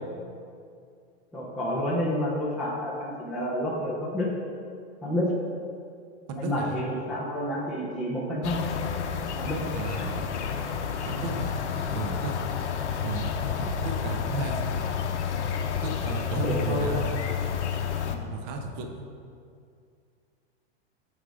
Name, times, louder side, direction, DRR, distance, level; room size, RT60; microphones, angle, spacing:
voice 1, 1.3-4.3 5.0-5.3 6.4-8.6 9.4-9.6 16.3-17.1 18.0-18.2, equal, ahead, -10 dB, 0.3 m, -29 dB
voice 2, 6.3-6.8 9.7-10.2 11.1-11.5 11.9-12.3 13.0-13.3 13.6-14.6 15.8-17.1 18.3-19.0, right 4 dB, 40° right, 4 dB, 0.7 m, -34 dB
sound 1, 8.4-18.2, left 7 dB, 80° left, 0.8 m, -30 dB
8.9 x 3.5 x 4.9 m, 2.3 s
supercardioid pair, 150°, 34 cm